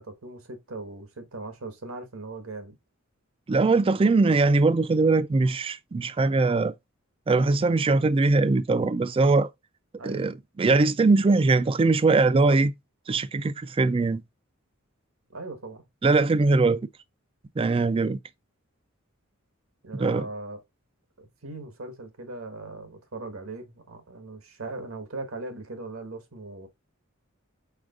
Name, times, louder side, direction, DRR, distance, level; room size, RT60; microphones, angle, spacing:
voice 1, 0.0-2.7 10.0-10.3 15.3-15.8 19.8-20.6 21.2-26.7, right 2 dB, 80° right, 1.3 m, -39 dB
voice 2, 3.5-6.7 7.3-9.5 10.0-12.7 13.1-14.2 16.0-16.9 17.6-18.2 19.9-20.3, right 3 dB, 25° right, 0.3 m, -21 dB
4.9 x 4.3 x 2.4 m
head